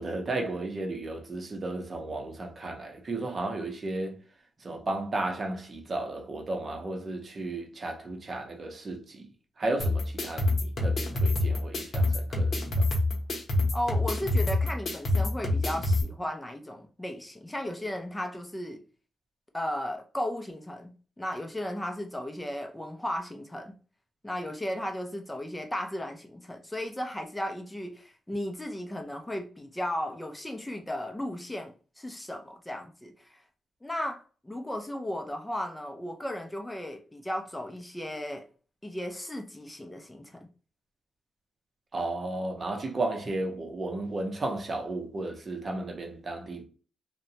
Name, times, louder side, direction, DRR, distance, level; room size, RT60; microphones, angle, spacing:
voice 1, 0.0-4.2 4.6-9.3 9.6-12.9 41.9-46.7, right 2 dB, 40° right, 0.6 m, -34 dB
sound 1, 9.8-16.0, left 2 dB, 50° left, 0.8 m, -26 dB
voice 2, 13.7-18.8 19.5-23.7 24.2-33.4 33.8-38.5 38.8-40.5, left 1 dB, 10° left, 0.4 m, -35 dB
2.7 x 2.1 x 2.7 m
cardioid pair, 105°, 0 cm